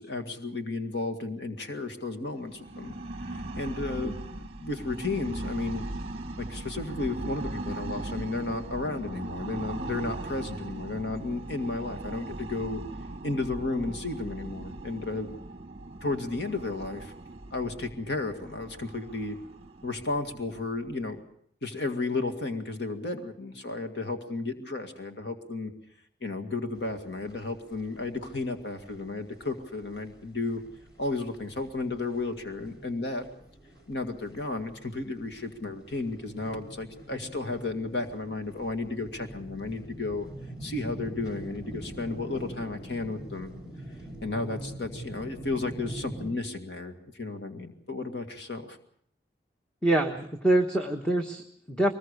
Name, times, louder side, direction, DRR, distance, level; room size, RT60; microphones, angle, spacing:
voice 1, 0.0-2.9 3.2-5.8 6.4-12.8 13.2-15.3 16.0-17.1 17.5-19.4 19.8-21.2 21.6-25.7 26.2-30.6 31.0-33.3 33.9-40.3 40.6-43.5 44.2-48.8, left 3 dB, 80° left, 6 dB, 2.0 m, -33 dB
sound 1, 2.4-21.2, right 2 dB, 35° right, 1.1 m, -39 dB
sound 2, 26.8-46.3, right 1 dB, 25° left, 6.2 m, -44 dB
voice 2, 49.8-51.9, right 1 dB, 5° left, 2 dB, 1.2 m, -25 dB
23.0 x 20.5 x 6.6 m, 0.66 s
head